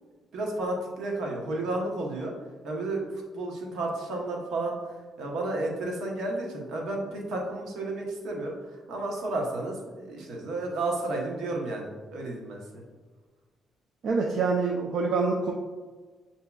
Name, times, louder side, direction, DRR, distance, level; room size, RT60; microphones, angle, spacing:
voice 1, 0.3-2.3 2.6-12.8, right 2 dB, 80° right, 0 dB, 0.9 m, -32 dB
voice 2, 14.0-15.5, right 4 dB, 60° right, 0 dB, 0.4 m, -26 dB
6.9 x 2.7 x 2.3 m, 1.4 s
cardioid pair, 90°, 0 cm